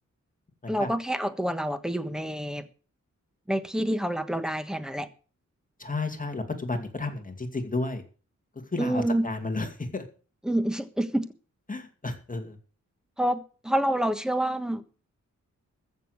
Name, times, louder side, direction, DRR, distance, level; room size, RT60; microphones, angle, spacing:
voice 1, 0.7-2.6 3.5-5.1 8.8-9.3 10.4-11.2 13.2-14.8, right 1 dB, ahead, 1.4 m, -27 dB
voice 2, 5.8-8.0 8.7-10.0 11.7-12.6, left 3 dB, 25° left, 2.4 m, -32 dB
14.5 x 6.9 x 8.1 m
wide cardioid pair, 130°, 31 cm